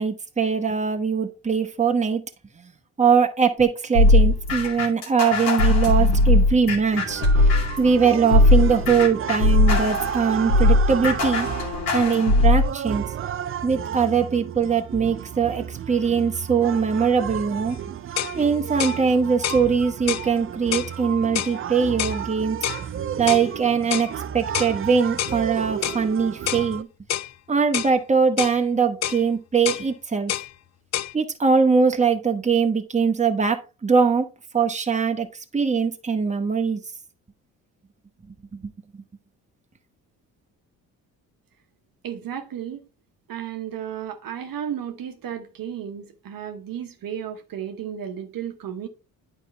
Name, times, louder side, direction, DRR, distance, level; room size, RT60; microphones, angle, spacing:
voice 1, 0.0-2.2 2.6-2.7 3.0-7.2 7.8-11.5 11.9-13.0 13.6-17.8 18.4-22.6 23.2-26.9 27.5-30.4 31.1-34.3 34.5-35.3 35.5-36.8 38.5-39.0, right 5 dB, 20° right, 1.1 m, -22 dB
sound 1, 3.9-7.9 8.3-12.7, left 2 dB, 80° left, 2.4 m, -19 dB
sound 2, 6.9-26.8, right 9 dB, 35° right, 0.5 m, -32 dB
sound 3, 17.7-17.8 18.2-18.4 18.8-19.0 19.4-19.6 20.1-20.3 20.7-20.9 21.3-21.6 22.0-22.2 22.6-22.8 23.3-23.5 23.9-24.1 24.5-24.7 25.2-25.4 25.8-26.0 26.5-26.7 27.1-27.3 27.7-27.9 28.4-28.6 29.0-29.2 29.6-29.9 30.3-30.5 30.9-31.1, left 12 dB, 45° left, 0.4 m, -27 dB
voice 2, 42.0-42.9 43.3-48.9, right 9 dB, 60° right, 1.1 m, -33 dB
9.1 x 4.6 x 3.2 m
supercardioid pair, 65°, 38 cm